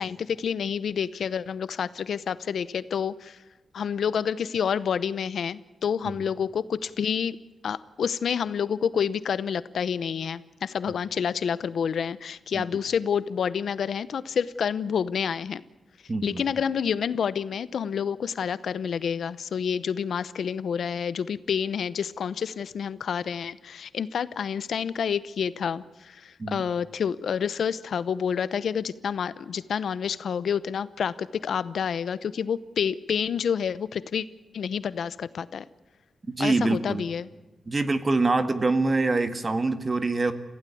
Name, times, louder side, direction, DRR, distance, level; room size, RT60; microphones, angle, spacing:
voice 1, 0.0-3.4 3.7-7.4 7.6-15.6 16.2-34.3 34.5-35.6 36.4-37.3, left 7 dB, 85° left, 16 dB, 0.8 m, -28 dB
voice 2, 16.1-16.4 26.4-26.6 36.4-37.0 37.7-40.3, right 3 dB, 30° right, 10 dB, 1.8 m, -25 dB
27.5 x 16.0 x 8.5 m, 1.1 s
wide cardioid pair, 120°, 0 cm